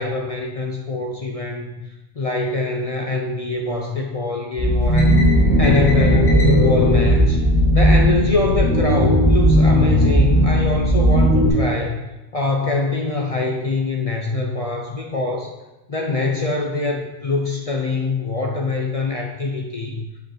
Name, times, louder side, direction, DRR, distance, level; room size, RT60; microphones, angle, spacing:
voice 1, 0.0-1.8 2.2-5.2 5.6-7.4 7.7-12.0 12.3-15.5 15.9-20.0, left 3 dB, 40° left, 0 dB, 0.6 m, -24 dB
sound 1, 4.6-11.5, equal, 75° left, 2.0 m, -16 dB
7.8 x 4.8 x 3.8 m, 1.0 s
omnidirectional pair, 1.1 m